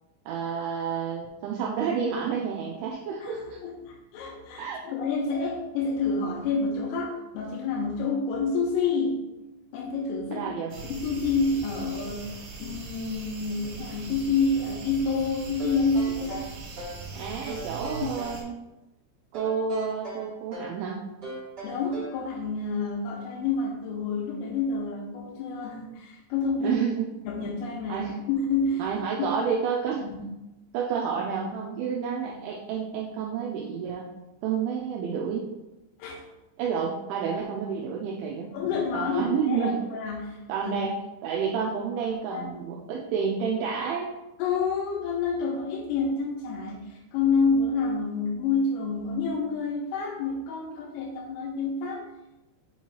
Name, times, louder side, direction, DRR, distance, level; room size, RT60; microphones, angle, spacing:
voice 1, 0.3-3.6 4.6-4.9 10.3-10.7 17.1-18.5 19.3-21.0 26.6-27.1 27.9-28.1 28.8-30.1 30.7-34.0 34.4-35.5 36.6-38.5 38.9-39.8 40.5-41.0 41.2-44.1, right 6 dB, 90° right, -2 dB, 2.6 m, -30 dB
voice 2, 3.2-9.2 9.7-10.5 10.9-16.4 21.6-26.8 27.3-28.9 29.2-29.3 30.0-30.2 36.0-36.2 38.5-40.7 42.3-42.5 44.4-52.1, left 4 dB, 80° left, 0 dB, 3.3 m, -28 dB
sound 1, 10.7-18.4, right 3 dB, 70° right, 3.2 m, -41 dB
sound 2, 15.6-17.0 17.5-18.4 19.3-20.8 21.2-22.2, right 2 dB, 45° right, 1.3 m, -39 dB
7.5 x 2.9 x 4.6 m, 1.0 s
omnidirectional pair, 5.9 m